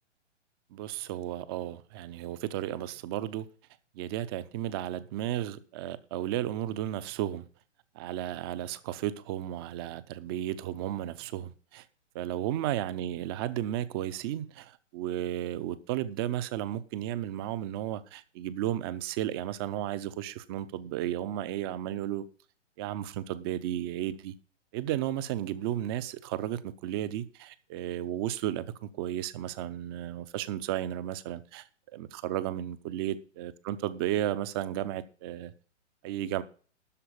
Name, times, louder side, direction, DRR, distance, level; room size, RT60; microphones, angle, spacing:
voice 1, 0.7-3.5 4.0-7.4 8.0-11.8 12.1-22.2 22.8-24.3 24.7-31.7 31.9-35.5 36.0-36.4, right 12 dB, 20° right, 0.5 m, -33 dB
12.5 x 4.6 x 8.5 m
hypercardioid pair, 135°, 37 cm